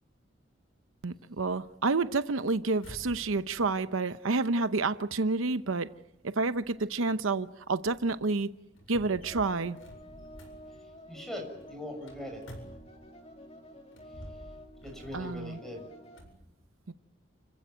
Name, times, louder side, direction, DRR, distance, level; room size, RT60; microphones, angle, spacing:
voice 1, 1.0-5.9 6.2-8.5 8.9-9.8 15.1-15.6 16.9-17.0, right 3 dB, 90° right, 0.8 m, -29 dB
sound 1, 1.4-13.3 13.8-16.4, equal, 85° left, 7.9 m, -52 dB
sound 2, 9.2-16.2, equal, 30° left, 2.7 m, -50 dB
voice 2, 11.1-12.4 14.8-15.9, left 1 dB, ahead, 7.0 m, -41 dB
29.5 x 15.5 x 9.3 m
head